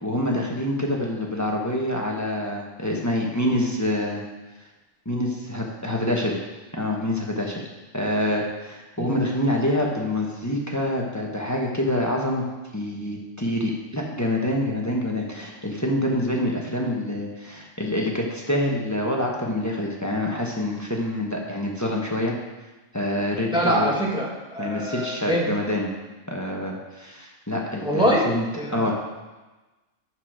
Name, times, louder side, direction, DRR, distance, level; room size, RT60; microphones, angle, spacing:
voice 1, 0.0-4.2 5.0-6.4 6.7-7.6 7.9-12.4 12.7-22.3 22.9-23.9 24.6-25.9 26.3-28.4 28.7-28.9, left 1 dB, 15° left, -1 dB, 1.1 m, -26 dB
voice 2, 23.5-25.5 27.8-28.3 28.5-28.8, equal, 5° right, -4 dB, 1.7 m, -24 dB
12.5 x 4.9 x 4.9 m, 1.2 s
omnidirectional pair, 1.4 m